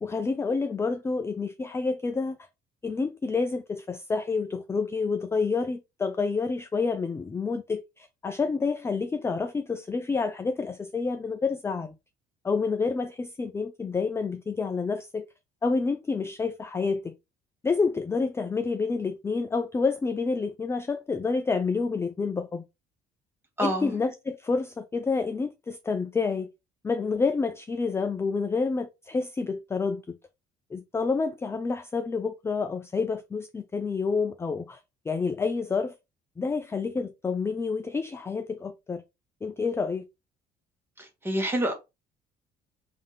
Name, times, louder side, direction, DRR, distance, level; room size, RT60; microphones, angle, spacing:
voice 1, 0.0-2.4 2.8-11.9 12.4-15.3 15.6-17.1 17.6-22.6 23.6-26.5 26.8-30.2 30.7-34.8 35.1-35.9 36.4-39.0 39.4-40.0, left 4 dB, 15° left, 0.3 m, -28 dB
voice 2, 23.6-23.9 41.0-41.7, equal, 15° right, 1.3 m, -27 dB
3.5 x 2.6 x 3.8 m
cardioid pair, 110°, 17 cm